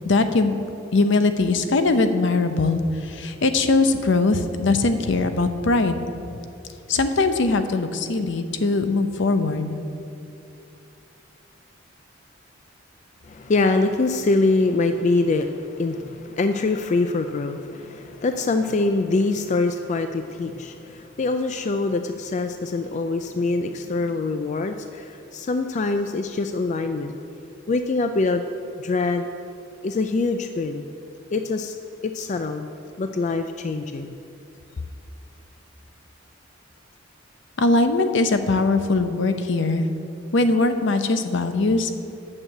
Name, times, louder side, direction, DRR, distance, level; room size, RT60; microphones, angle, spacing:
voice 1, 0.0-0.6 0.9-6.0 6.9-9.7 37.6-39.9 40.3-41.9, left 3 dB, 65° left, 8 dB, 0.7 m, -21 dB
voice 2, 13.2-27.1 27.7-28.4 28.8-29.3 29.8-30.9 31.3-31.8 32.0-32.7 33.0-34.2, left 3 dB, 35° left, 7 dB, 0.4 m, -24 dB
8.9 x 6.5 x 7.7 m, 2.7 s
head